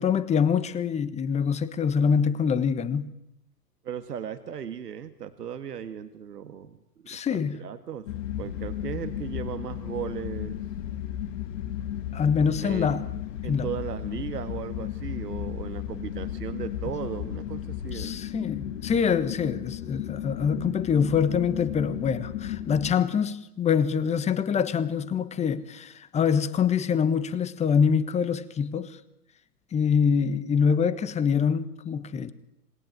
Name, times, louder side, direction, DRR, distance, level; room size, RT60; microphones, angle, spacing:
voice 1, 0.0-3.1 7.1-7.6 12.1-13.0 13.5-13.7 17.9-28.9 29.7-32.3, left 6 dB, 15° left, 1.3 m, -25 dB
voice 2, 3.8-6.8 7.1-8.1 8.4-10.6 12.6-13.0 13.4-18.1, right 8 dB, 70° right, 1.8 m, -36 dB
sound 1, 8.1-23.0, left 11 dB, 50° left, 2.2 m, -34 dB
27.0 x 21.0 x 9.3 m
figure-of-eight pair, 115°, 49 cm